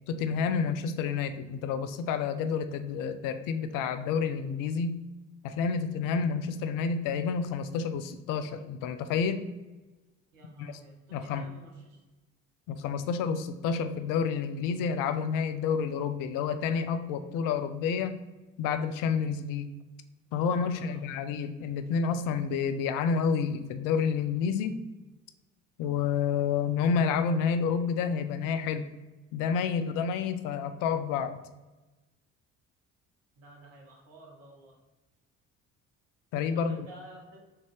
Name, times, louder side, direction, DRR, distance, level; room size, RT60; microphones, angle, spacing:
voice 1, 0.1-5.0 5.4-9.5 10.6-10.8 11.1-11.5 12.7-18.2 18.6-19.7 20.3-24.8 25.8-28.8 29.3-31.4 36.3-36.8, left 6 dB, 55° left, 10 dB, 0.5 m, -29 dB
voice 2, 10.3-12.0 20.6-21.1 33.4-34.8 36.5-37.4, right 2 dB, 75° right, -1 dB, 1.1 m, -52 dB
3.7 x 3.2 x 3.4 m, 1.1 s
figure-of-eight pair, 45°, 39 cm